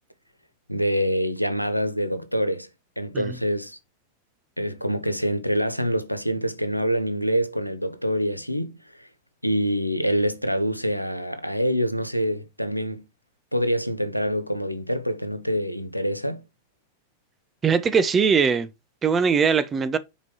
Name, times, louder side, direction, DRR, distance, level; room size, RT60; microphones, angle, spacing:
voice 1, 0.7-2.7 3.0-3.8 4.6-9.1 9.4-13.0 13.5-16.4, equal, 90° left, 0.7 m, -26 dB
voice 2, 17.6-18.7 19.0-20.0, right 6 dB, 20° right, 0.8 m, -21 dB
5.5 x 5.1 x 4.8 m
figure-of-eight pair, 90°, 0 cm